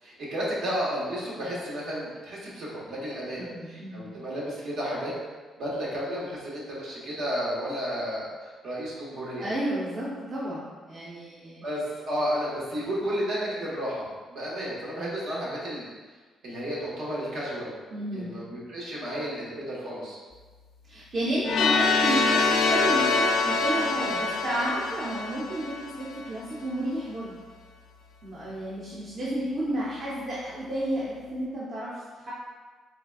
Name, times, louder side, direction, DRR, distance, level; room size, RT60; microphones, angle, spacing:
voice 1, 0.0-5.1 5.6-9.5 11.6-15.9 16.4-17.7 18.1-20.2, equal, 75° right, -6 dB, 1.2 m, -32 dB
voice 2, 3.4-4.1 9.4-11.6 17.9-18.4 20.9-27.3 28.2-32.3, right 1 dB, 50° right, -7 dB, 0.8 m, -32 dB
sound 1, 21.4-26.3, left 3 dB, 80° left, 0.4 m, -25 dB
3.8 x 3.5 x 2.3 m, 1.4 s
cardioid pair, 90°, 0 cm